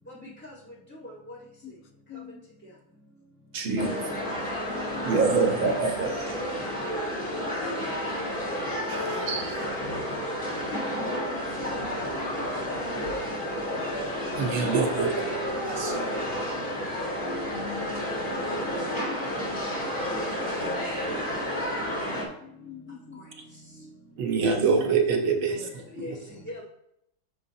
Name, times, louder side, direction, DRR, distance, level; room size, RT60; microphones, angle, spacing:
voice 1, 2.1-2.4 4.7-5.3 9.1-9.3 17.5-18.0 18.3-18.4 22.1-23.3, left 10 dB, 70° left, 6 dB, 0.8 m, -44 dB
voice 2, 3.5-4.0 5.0-6.4 8.9-9.6 14.4-15.1 15.6-15.9 24.2-25.6, right 5 dB, 80° right, 3 dB, 1.9 m, -25 dB
sound 1, 3.8-22.2, equal, 45° left, 2.2 m, -31 dB
voice 3, 5.0-5.3 6.7-7.0 7.6-7.9 8.1-8.3 10.7-11.3 14.7-14.8 15.8-16.1 18.3-18.4 20.4-21.2 21.5-21.6 26.0-26.1 26.5-26.6, equal, 5° left, -6 dB, 1.2 m, -39 dB
8.8 x 6.5 x 2.8 m, 0.75 s
omnidirectional pair, 2.1 m